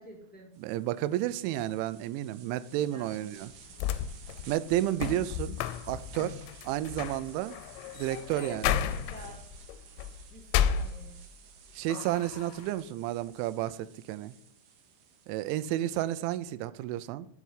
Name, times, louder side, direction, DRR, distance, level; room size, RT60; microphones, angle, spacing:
voice 1, 0.0-0.5 2.7-3.8 8.3-9.4 10.3-11.2 15.7-16.0, right 2 dB, 5° left, 1.1 m, -47 dB
sound 1, 0.5-16.1, right 7 dB, 65° right, 3.1 m, -54 dB
voice 2, 0.6-3.5 4.5-5.6 5.9-7.6 8.0-8.6 11.8-14.3 15.3-17.3, right 13 dB, 85° right, 2.9 m, -31 dB
sound 2, 3.5-11.5 11.9-12.7, left 9 dB, 85° left, 2.8 m, -33 dB
7.4 x 6.8 x 8.1 m
omnidirectional pair, 5.5 m